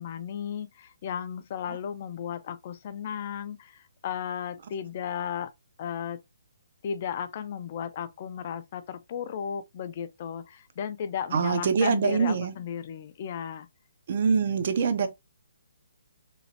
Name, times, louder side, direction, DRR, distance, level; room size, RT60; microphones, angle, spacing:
voice 1, 0.0-5.5 5.8-6.2 6.8-13.7, left 8 dB, 35° left, 0.3 m, -35 dB
voice 2, 11.3-12.5 14.1-15.1, right 5 dB, 45° right, 0.5 m, -24 dB
3.0 x 2.4 x 2.7 m
hypercardioid pair, 165°, 0 cm